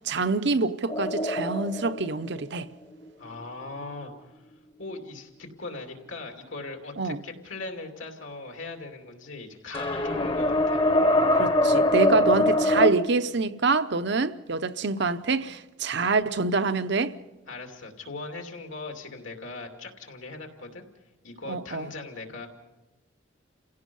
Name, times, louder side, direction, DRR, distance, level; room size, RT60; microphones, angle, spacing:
voice 1, 0.0-2.7 7.0-7.2 11.3-17.1 21.5-21.9, right 3 dB, 60° right, 0.7 m, -26 dB
sound 1, 0.9-3.3 9.7-12.9, left 1 dB, 25° left, 1.0 m, -23 dB
voice 2, 3.2-4.5 4.8-10.8 17.5-20.8 21.2-22.5, left 3 dB, 75° left, 2.7 m, -40 dB
29.0 x 16.5 x 5.4 m
head